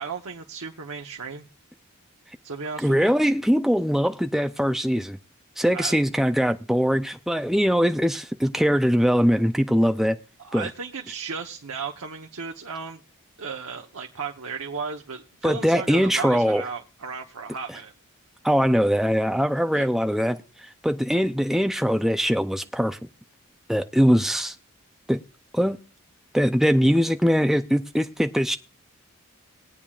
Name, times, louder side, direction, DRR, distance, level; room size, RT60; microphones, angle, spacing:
voice 1, 0.0-1.5 2.4-3.1 5.7-5.9 10.4-13.0 13.4-17.9 19.7-19.9, right 5 dB, 90° right, 1.0 m, -35 dB
voice 2, 2.8-5.2 5.6-10.2 10.5-10.7 15.4-16.6 18.4-23.0 23.7-24.5 25.1-25.2 25.5-25.8 26.3-28.6, equal, ahead, 0.5 m, -22 dB
20.5 x 8.7 x 2.4 m
head